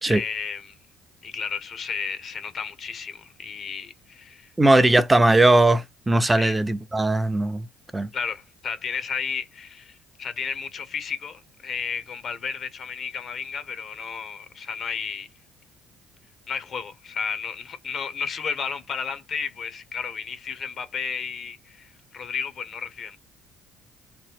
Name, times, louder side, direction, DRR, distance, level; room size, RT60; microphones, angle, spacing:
voice 1, 0.1-0.8 1.2-4.5 6.4-6.6 8.1-15.3 16.5-23.2, left 6 dB, 50° left, 0.6 m, -33 dB
voice 2, 4.6-7.7 7.9-8.1, right 2 dB, 15° right, 0.6 m, -19 dB
3.0 x 2.1 x 3.4 m
supercardioid pair, 65°, 0 cm